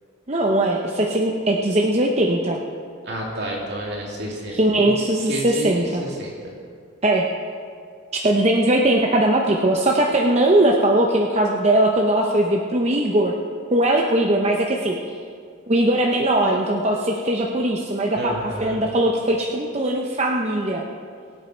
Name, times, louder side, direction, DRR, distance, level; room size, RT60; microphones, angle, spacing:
voice 1, 0.3-2.6 4.5-6.0 7.0-7.2 8.1-13.3 13.7-15.0 15.7-20.8, right 1 dB, 30° right, 0 dB, 0.8 m, -20 dB
voice 2, 3.1-4.9 5.3-6.5 18.1-18.8, right 1 dB, 55° right, -3 dB, 2.7 m, -30 dB
22.5 x 7.9 x 4.5 m, 2.2 s
head